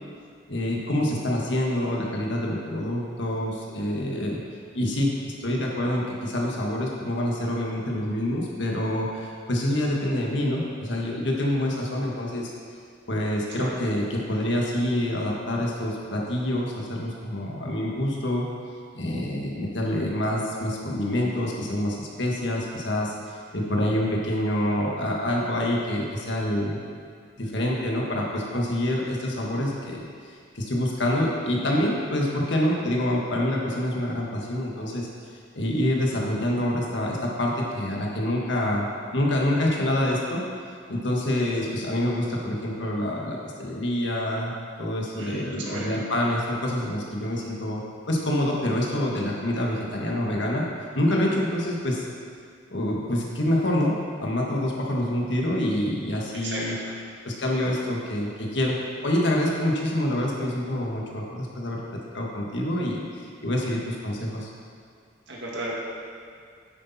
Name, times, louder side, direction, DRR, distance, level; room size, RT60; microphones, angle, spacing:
voice 1, 0.5-4.4 4.7-12.5 13.1-18.5 18.9-26.8 27.4-30.0 30.5-35.1 35.5-40.4 40.9-44.5 44.8-47.8 48.1-50.6 50.9-52.1 52.7-56.7 57.2-58.8 59.0-61.8 62.1-64.5, left 1 dB, 65° left, -2 dB, 1.6 m, -26 dB
voice 2, 45.2-46.0 56.4-56.8 65.3-65.8, right 2 dB, 60° right, -4 dB, 2.1 m, -34 dB
10.0 x 8.4 x 4.2 m, 2.2 s
head